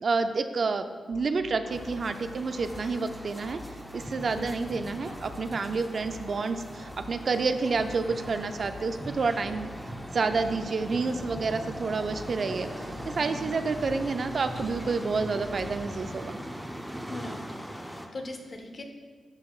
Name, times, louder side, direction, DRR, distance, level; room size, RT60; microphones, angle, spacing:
voice 1, 0.0-3.6 3.9-9.7 10.1-16.4, right 4 dB, 60° right, 8 dB, 0.4 m, -29 dB
sound 1, 1.1-15.8, left 3 dB, 75° left, 0.5 m, -47 dB
sound 2, 1.7-18.1, equal, 5° right, 0.7 m, -40 dB
voice 2, 4.2-4.6 13.2-13.5 17.1-18.8, left 2 dB, 50° left, 3 dB, 1.0 m, -41 dB
10.5 x 6.0 x 2.4 m, 1.5 s
cardioid pair, 60°, 0 cm